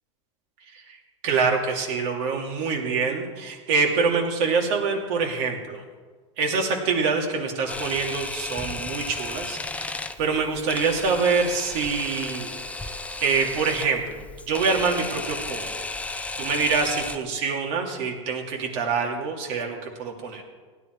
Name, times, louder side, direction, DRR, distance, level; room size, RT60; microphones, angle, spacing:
voice 1, 1.2-5.8 6.4-12.6 12.8-12.9 13.2-15.8 16.4-20.4, right 4 dB, 60° right, 1 dB, 2.7 m, -25 dB
Camera, 7.7-17.2, left 3 dB, 10° left, 0.6 m, -34 dB
16.0 x 10.5 x 4.6 m, 1.5 s
supercardioid pair, 125°, 17 cm